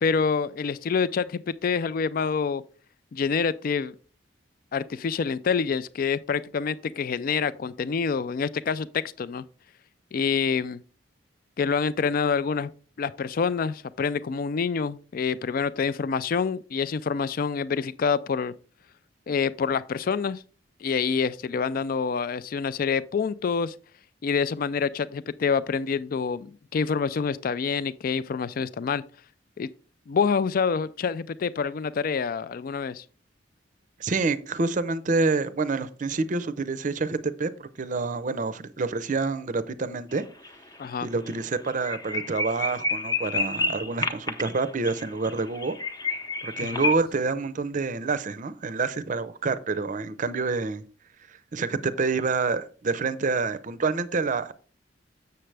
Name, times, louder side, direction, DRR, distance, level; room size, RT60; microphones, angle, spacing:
voice 1, 0.0-2.6 3.1-3.9 4.7-9.4 10.1-10.8 11.6-12.7 13.0-18.5 19.3-20.4 20.8-23.7 24.2-29.0 29.6-29.7 30.1-33.0 40.8-41.1 46.6-46.9, left 5 dB, 50° left, 0.4 m, -27 dB
voice 2, 34.0-40.2 41.0-45.8 46.4-50.8 51.5-54.5, right 4 dB, 45° right, 0.5 m, -27 dB
sound 1, 40.1-40.5 40.8-40.9 41.3-41.4 41.7-47.0, left 3 dB, 20° left, 0.7 m, -30 dB
7.5 x 6.8 x 3.3 m
head